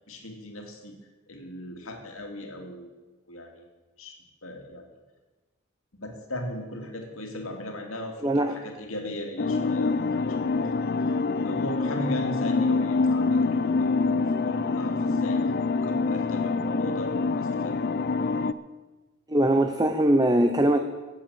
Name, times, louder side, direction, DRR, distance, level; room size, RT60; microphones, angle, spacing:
voice 1, 0.1-1.0 1.3-2.9 3.3-3.7 4.0-4.1 4.4-4.8 6.0-10.8 11.4-15.4 15.8-17.8, left 1 dB, 75° left, 2 dB, 2.5 m, -38 dB
voice 2, 8.2-8.5 19.3-20.8, right 1 dB, 20° right, 6 dB, 0.7 m, -21 dB
sound 1, 9.4-18.5, left 4 dB, 50° left, 0.5 m, -25 dB
16.0 x 7.9 x 7.0 m, 1.2 s
head